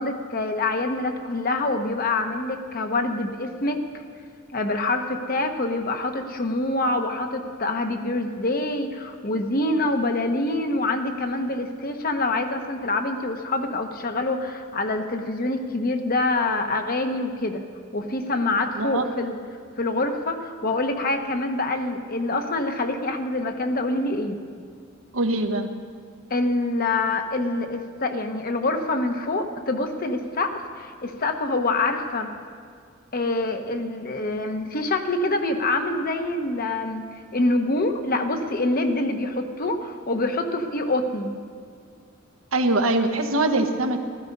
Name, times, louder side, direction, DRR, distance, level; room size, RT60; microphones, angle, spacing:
voice 1, 0.0-3.8 4.5-17.6 17.9-19.4 19.8-24.4 26.3-32.3 33.1-37.0 37.3-41.4, left 2 dB, 45° left, 5 dB, 1.1 m, -25 dB
voice 2, 25.1-25.7 42.5-44.0, right 2 dB, 85° right, 6 dB, 1.2 m, -22 dB
16.0 x 13.5 x 5.4 m, 2.2 s
head